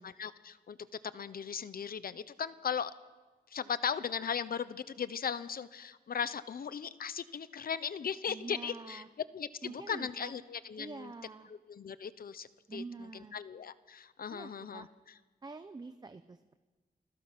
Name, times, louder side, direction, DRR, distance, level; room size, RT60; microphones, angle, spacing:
voice 1, 0.0-2.9 3.5-9.0 9.3-11.1 11.5-12.8 13.1-14.9, left 7 dB, 65° left, 14 dB, 0.9 m, -38 dB
voice 2, 8.3-9.1 9.6-10.3 10.8-11.5 12.7-13.4 14.3-14.9 15.4-16.6, right 3 dB, 25° right, 9 dB, 0.7 m, -46 dB
29.0 x 21.0 x 6.2 m, 1.3 s
wide cardioid pair, 175°, 16 cm